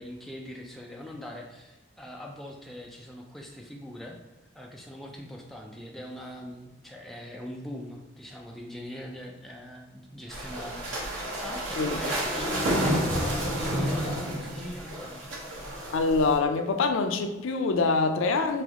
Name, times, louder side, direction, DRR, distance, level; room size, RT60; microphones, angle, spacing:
voice 1, 0.0-4.2 4.5-15.2, left 1 dB, ahead, -1 dB, 0.3 m, -41 dB
sound 1, 10.3-16.4, equal, 85° right, 1.1 m, -30 dB
voice 2, 15.9-18.6, left 4 dB, 80° left, 7 dB, 0.4 m, -25 dB
3.3 x 3.0 x 3.6 m, 1.0 s
head